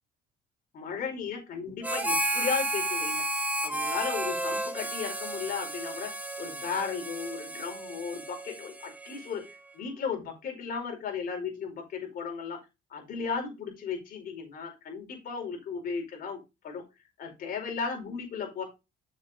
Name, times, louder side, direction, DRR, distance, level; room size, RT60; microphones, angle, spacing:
voice 1, 0.7-3.3 3.6-6.1 6.4-12.6 12.9-16.8 17.2-18.6, left 6 dB, 60° left, 2 dB, 4.8 m, -35 dB
Harmonica, 1.8-9.6, right 1 dB, 10° right, 1.2 m, -32 dB
7.4 x 7.1 x 3.7 m, 0.25 s
cardioid pair, 110°, 17 cm